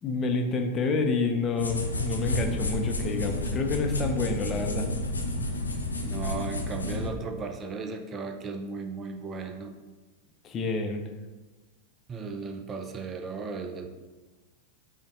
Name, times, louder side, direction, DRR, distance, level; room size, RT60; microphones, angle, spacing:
voice 1, 0.0-4.9 10.4-11.0, left 3 dB, 30° left, 4 dB, 0.5 m, -28 dB
sound 1, 1.6-7.1, left 2 dB, 85° left, 0.4 m, -31 dB
voice 2, 6.0-9.7 12.1-13.9, right 4 dB, 25° right, 5 dB, 0.4 m, -36 dB
5.3 x 2.1 x 3.0 m, 1.2 s
figure-of-eight pair, 90°, 0 cm